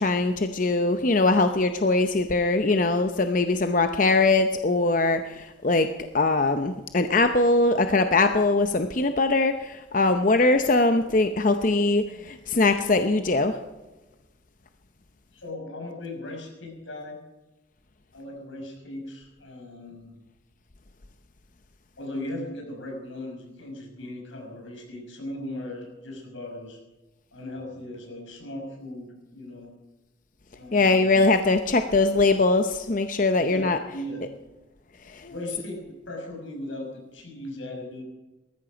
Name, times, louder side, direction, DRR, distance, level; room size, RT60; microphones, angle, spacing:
voice 1, 0.0-5.9 6.1-13.5 30.7-33.8 35.2-35.5, left 3 dB, 40° left, 8 dB, 0.7 m, -22 dB
voice 2, 15.3-17.2 18.1-20.2 22.0-26.8 27.3-29.7 30.5-31.2 33.4-34.3 35.3-38.0, left 1 dB, 90° left, 1 dB, 5.8 m, -38 dB
19.5 x 14.0 x 5.1 m, 1.1 s
head